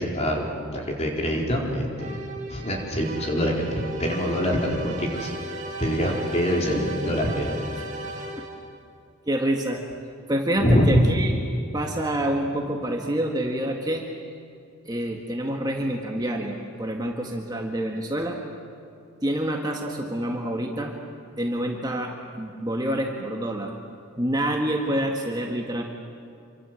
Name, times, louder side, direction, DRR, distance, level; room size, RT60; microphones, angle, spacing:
voice 1, 0.0-2.2 2.5-5.3 5.8-7.6 10.6-10.9, equal, 30° left, -1 dB, 4.6 m, -25 dB
sound 1, 2.0-8.8, right 2 dB, 35° right, 2.7 m, -36 dB
voice 2, 9.2-9.8 10.3-11.3 11.7-14.1 14.8-18.4 19.2-21.0 21.4-23.7 24.2-25.8, right 1 dB, 20° right, 1 dB, 1.8 m, -27 dB
28.0 x 25.5 x 7.9 m, 2.5 s
head